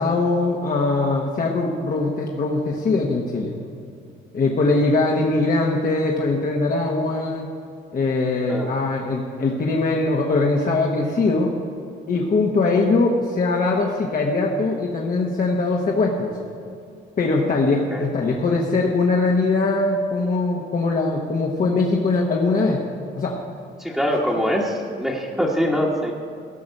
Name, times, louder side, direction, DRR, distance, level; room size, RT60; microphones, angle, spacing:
voice 1, 0.0-3.5 4.3-7.5 7.9-11.5 12.1-16.4 17.2-22.8 23.1-23.4, left 3 dB, 45° left, -1 dB, 1.2 m, -21 dB
voice 2, 23.8-26.1, equal, 5° right, -5 dB, 1.4 m, -23 dB
16.5 x 5.9 x 6.6 m, 2.4 s
cardioid pair, 90°, 20 cm